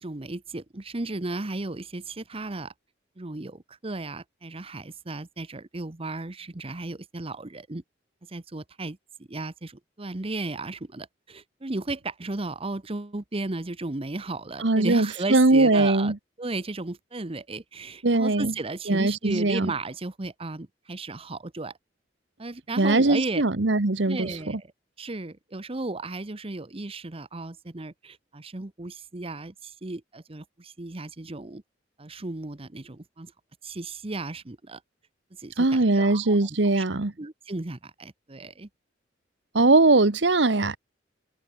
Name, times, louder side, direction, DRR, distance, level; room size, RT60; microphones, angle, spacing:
voice 1, 0.0-2.7 3.2-7.8 8.3-9.0 9.3-21.8 22.4-23.4 24.1-24.7 25.0-31.6 32.0-33.3 33.6-34.8 35.4-36.4 36.6-38.7, right 2 dB, 30° right, 1.0 m, -35 dB
voice 2, 14.6-16.2 18.0-18.5 18.9-19.7 22.8-24.3 35.6-37.1 39.5-40.8, right 2 dB, 70° right, 1.2 m, -21 dB
head